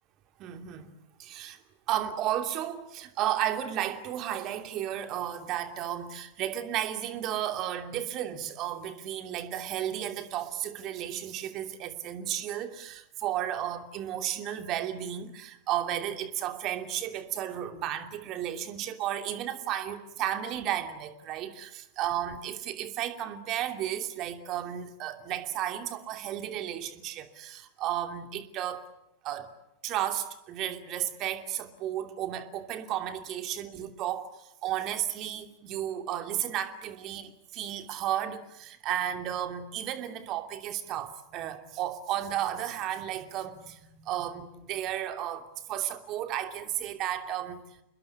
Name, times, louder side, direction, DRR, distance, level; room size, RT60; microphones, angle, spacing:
voice 1, 0.4-0.9 1.2-1.6 1.9-28.8 29.2-29.5 29.8-47.8, right 11 dB, 35° right, 7 dB, 2.8 m, -33 dB
28.5 x 21.5 x 8.5 m, 0.82 s
figure-of-eight pair, 90°, 0 cm